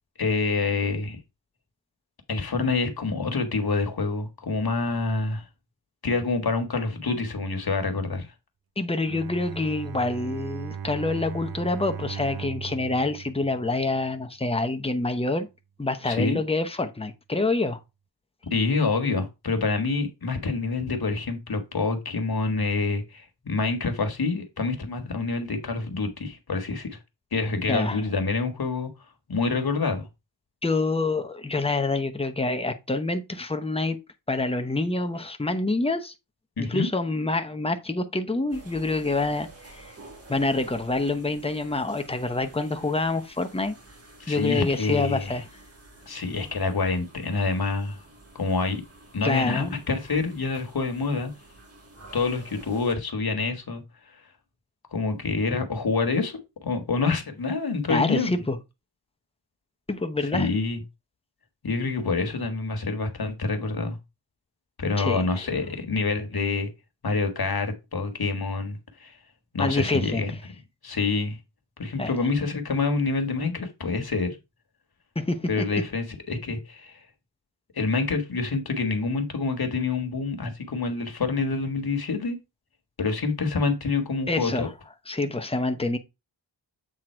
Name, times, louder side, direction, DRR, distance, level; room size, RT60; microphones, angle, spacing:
voice 1, 0.2-1.2 2.3-5.4 6.0-8.3 16.0-16.4 18.5-27.0 27.3-28.9 29.3-30.1 36.6-36.9 44.2-45.4 46.1-48.0 48.3-48.8 49.1-51.3 52.1-54.1 54.9-58.3 60.3-60.8 61.6-64.0 64.8-66.7 67.0-69.2 69.5-70.3 70.8-71.4 71.8-74.4 75.5-77.0 77.7-82.4 83.0-84.7, left 4 dB, 55° left, 1.5 m, -27 dB
voice 2, 8.8-15.5 15.8-17.8 27.7-28.0 30.6-34.0 34.3-36.1 36.6-39.5 39.8-39.9 40.3-43.8 44.3-45.4 49.2-49.8 57.9-58.6 59.9-60.5 65.0-65.4 69.6-70.2 72.0-72.1 75.2-75.6 84.3-84.7 85.1-86.0, left 2 dB, 15° left, 0.8 m, -26 dB
Bowed string instrument, 9.0-14.3, right 7 dB, 55° right, 0.5 m, -38 dB
sound 1, 38.5-52.9, right 2 dB, 35° right, 2.1 m, -50 dB
7.8 x 3.7 x 4.4 m
wide cardioid pair, 100°, 44 cm